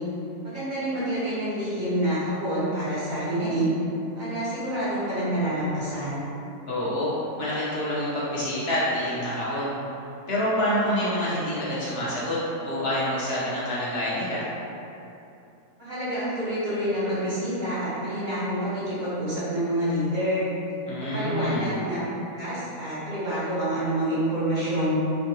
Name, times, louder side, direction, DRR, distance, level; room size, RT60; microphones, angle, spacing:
voice 1, 0.4-3.8 4.1-6.2 15.8-20.5 21.1-22.0 22.4-25.0, right 1 dB, 45° right, -11 dB, 0.7 m, -27 dB
voice 2, 6.7-7.1 7.4-9.7 10.3-14.4 20.9-21.7, equal, 55° left, -9 dB, 0.8 m, -27 dB
3.4 x 2.2 x 2.7 m, 2.8 s
omnidirectional pair, 1.6 m